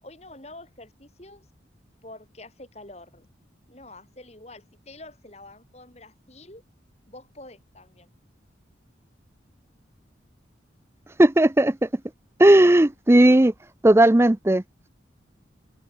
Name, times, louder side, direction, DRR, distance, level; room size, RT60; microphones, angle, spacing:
voice 1, 0.0-1.5 2.0-3.3 3.7-6.6 7.1-8.1, left 2 dB, 35° left, 4.7 m, -46 dB
voice 2, 11.2-11.9 12.4-13.5 13.8-14.6, right 1 dB, 15° right, 0.4 m, -16 dB
open air
head